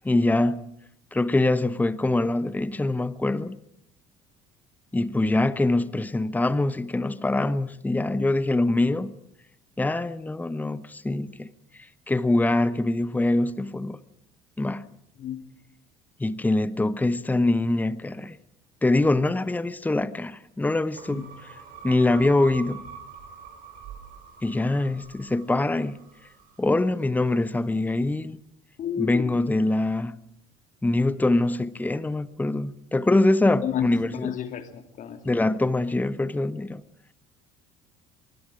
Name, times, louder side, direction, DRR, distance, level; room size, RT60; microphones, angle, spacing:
voice 1, 0.0-0.6 1.1-3.6 4.9-9.1 9.8-11.5 12.1-14.0 14.6-14.9 16.2-18.4 18.8-21.5 21.8-22.8 24.4-26.0 26.6-28.4 29.0-30.2 30.8-34.3 35.2-36.8, left 2 dB, 10° left, 1.0 m, -24 dB
sound 1, 21.0-27.3, right 6 dB, 55° right, 5.0 m, -45 dB
voice 2, 28.8-29.3 33.6-35.2, left 9 dB, 50° left, 2.5 m, -31 dB
24.5 x 23.0 x 5.0 m
hypercardioid pair, 60°, 17 cm